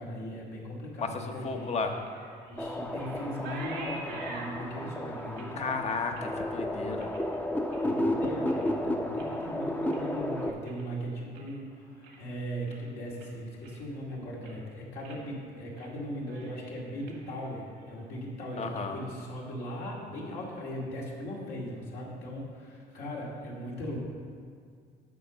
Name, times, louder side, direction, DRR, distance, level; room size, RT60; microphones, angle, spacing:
voice 1, 0.0-1.8 2.5-5.6 7.8-24.0, equal, 75° left, -3 dB, 2.3 m, -38 dB
voice 2, 1.4-1.9 5.6-7.1 18.6-19.0, left 4 dB, 40° left, 5 dB, 0.9 m, -33 dB
sound 1, 1.4-8.0 8.4-8.8 9.1-11.6 11.9-12.3 12.7-12.8 13.2-14.0 14.3-14.7 15.0-15.2 15.6-15.9 16.2-18.1, right 3 dB, 90° right, 1.7 m, -48 dB
sound 2, 2.6-10.5, left 1 dB, 10° left, 0.7 m, -32 dB
8.5 x 5.1 x 7.1 m, 2.2 s
cardioid pair, 110°, 17 cm